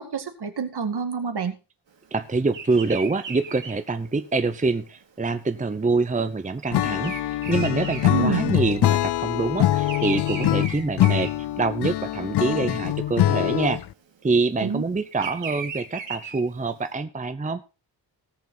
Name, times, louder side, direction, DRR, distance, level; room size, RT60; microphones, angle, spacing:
voice 1, 0.0-1.6 8.1-8.5 14.6-14.8, right 6 dB, 60° right, 7 dB, 2.1 m, -27 dB
voice 2, 2.1-11.3 11.6-13.8 14.2-17.6, right 3 dB, 15° right, 11 dB, 0.8 m, -25 dB
Bird vocalization bird call bird song, 2.5-8.9 9.2-12.1 12.5-12.9 13.9-16.8, right 6 dB, 80° right, 2.6 m, -37 dB
Acoustic guitar / Strum, 6.7-13.9, left 13 dB, 65° left, 0.5 m, -23 dB
18.5 x 6.9 x 3.9 m, 0.30 s
wide cardioid pair, 90°, 44 cm